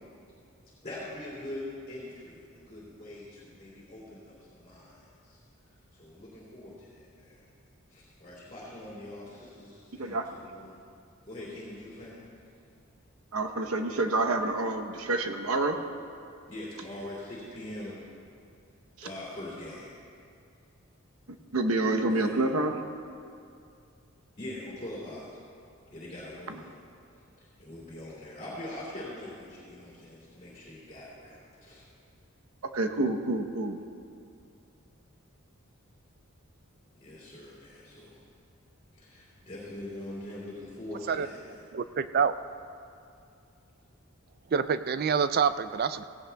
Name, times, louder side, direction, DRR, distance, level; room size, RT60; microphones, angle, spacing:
voice 1, 0.8-5.4 5.9-7.4 7.9-10.8 11.2-12.2 16.5-18.0 19.0-19.9 22.1-22.4 24.4-25.4 25.9-26.7 27.4-31.8 36.9-38.2 38.9-41.6, left 1 dB, 30° left, -8 dB, 2.8 m, -43 dB
voice 2, 13.3-15.8 19.0-19.1 21.5-22.8 26.5-26.6 32.7-33.8, right 2 dB, 85° right, 5 dB, 0.9 m, -28 dB
voice 3, 41.7-42.3 44.5-46.0, right 6 dB, 45° right, 12 dB, 0.4 m, -26 dB
17.5 x 16.5 x 2.3 m, 2.5 s
head